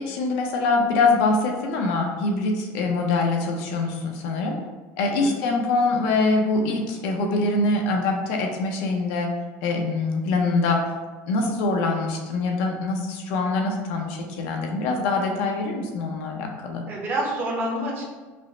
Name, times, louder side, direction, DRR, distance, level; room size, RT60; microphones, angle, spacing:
voice 1, 0.0-4.6 5.0-9.3 9.6-10.8 11.3-16.8, left 3 dB, 80° left, 2 dB, 0.7 m, -24 dB
voice 2, 5.0-5.4 16.9-18.1, right 1 dB, 35° right, -1 dB, 0.8 m, -28 dB
5.2 x 2.1 x 3.2 m, 1.3 s
cardioid pair, 160°, 6 cm